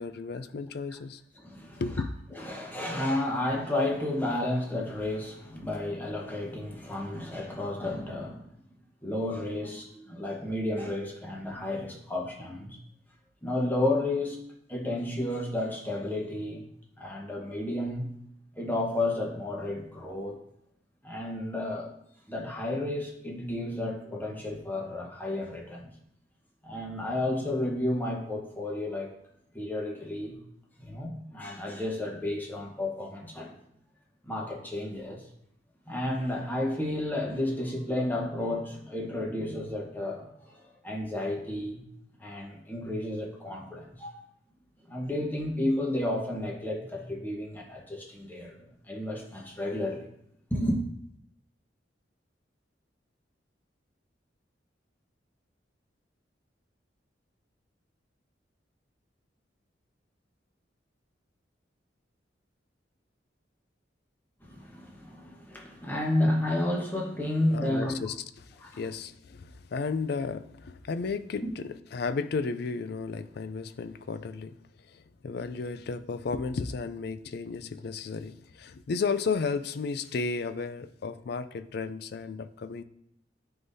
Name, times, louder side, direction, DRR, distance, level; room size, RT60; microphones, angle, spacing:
voice 1, 0.0-1.2 1.8-2.1 67.5-74.5 74.9-82.8, left 4 dB, 60° left, 13 dB, 0.4 m, -33 dB
voice 2, 1.4-1.8 2.4-8.5 9.0-12.8 13.4-14.4 14.7-16.6 17.0-18.1 18.5-20.4 21.0-21.9 22.3-25.9 26.6-29.1 29.5-30.4 30.8-33.5 34.2-35.2 35.9-41.8 42.2-44.2 44.9-50.1 50.5-50.8 64.4-67.9 68.6-68.8 71.4-71.5, left 1 dB, 10° left, -1 dB, 1.2 m, -32 dB
11.0 x 3.8 x 2.7 m, 0.74 s
head